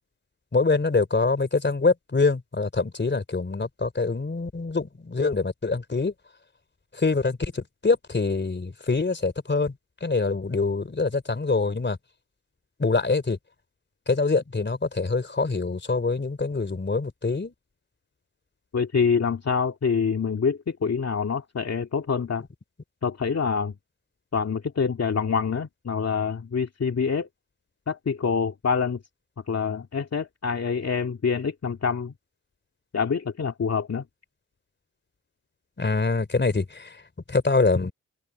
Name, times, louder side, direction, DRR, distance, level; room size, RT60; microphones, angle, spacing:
voice 1, 0.5-6.1 7.0-9.7 10.0-12.0 12.8-13.4 14.1-17.5 35.8-36.9 37.3-37.9, left 3 dB, 35° left, 3.8 m, -24 dB
voice 2, 18.7-22.4 23.0-23.7 24.3-27.3 27.9-29.0 29.5-32.1 32.9-34.0, left 6 dB, 50° left, 2.3 m, -26 dB
cardioid pair, 50°, 32 cm